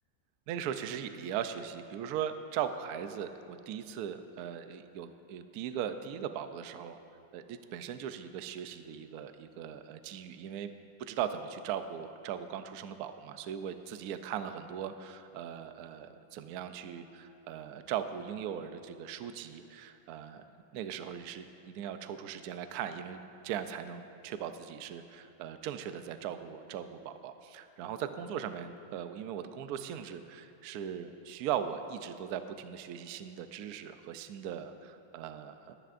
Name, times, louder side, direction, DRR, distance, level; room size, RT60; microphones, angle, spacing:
voice 1, 0.5-7.0 7.3-10.7 11.0-20.4 20.7-23.2 23.4-35.7, right 9 dB, 70° right, 9 dB, 0.9 m, -39 dB
22.0 x 10.0 x 2.5 m, 2.7 s
omnidirectional pair, 2.1 m